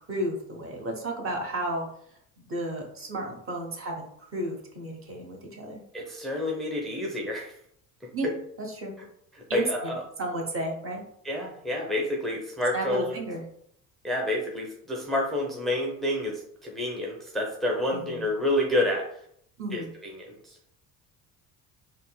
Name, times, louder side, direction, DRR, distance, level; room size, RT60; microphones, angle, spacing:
voice 1, 0.1-1.9 2.4-5.8 8.1-8.3 8.8-8.9 9.5-9.9 10.2-11.0 12.7-13.4 17.9-18.3 19.6-19.9, right 1 dB, 30° right, 1 dB, 0.9 m, -32 dB
voice 2, 5.9-7.6 9.0-9.1 9.3-10.0 11.2-13.2 14.0-19.1 19.7-20.6, left 1 dB, ahead, -2 dB, 0.7 m, -29 dB
3.6 x 2.1 x 2.2 m, 0.67 s
hypercardioid pair, 65°, 43 cm